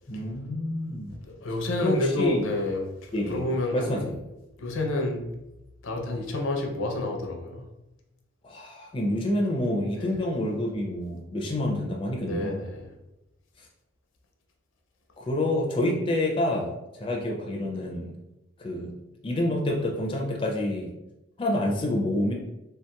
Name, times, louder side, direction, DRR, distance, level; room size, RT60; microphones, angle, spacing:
voice 1, 0.1-1.2 1.8-2.5 3.1-3.4 3.7-4.0 8.4-12.6 15.2-18.1 18.6-18.9 19.2-20.9 21.4-22.3, left 1 dB, 25° left, -1 dB, 0.4 m, -28 dB
voice 2, 1.2-4.1 4.6-5.3 5.8-7.7 10.0-10.2 12.2-12.9, left 2 dB, 80° left, 2 dB, 0.5 m, -29 dB
3.3 x 2.8 x 2.2 m, 0.96 s
head